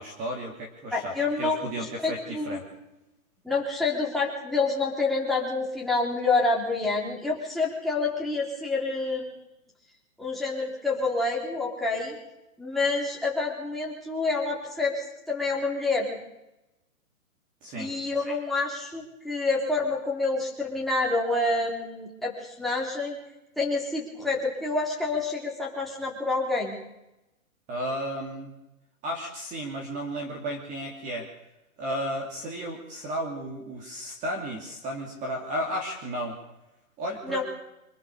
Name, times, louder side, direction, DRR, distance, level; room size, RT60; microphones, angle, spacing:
voice 1, 0.0-2.6 17.6-17.9 27.7-28.5 29.0-31.3 31.8-36.4 37.0-37.4, equal, 20° right, 1 dB, 2.8 m, -33 dB
voice 2, 0.9-2.6 3.4-9.3 10.2-12.2 12.6-16.2 17.8-23.2 23.6-26.8 37.2-37.4, left 3 dB, ahead, -4 dB, 3.8 m, -28 dB
26.0 x 18.5 x 7.0 m, 0.92 s
hypercardioid pair, 155°, 42 cm